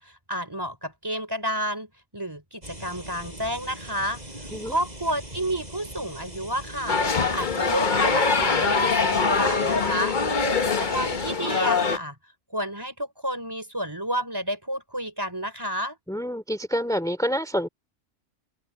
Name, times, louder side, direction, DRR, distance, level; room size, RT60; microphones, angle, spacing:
voice 1, 0.0-4.2 4.7-10.2 10.6-12.2 12.5-16.0, equal, 20° right, 3.9 m, -30 dB
sound 1, 2.6-11.3, right 1 dB, 35° right, 7.0 m, -41 dB
sound 2, 6.9-12.0, left 4 dB, 40° left, 1.3 m, -23 dB
voice 2, 16.1-17.7, equal, 5° left, 2.6 m, -27 dB
open air
omnidirectional pair, 1.3 m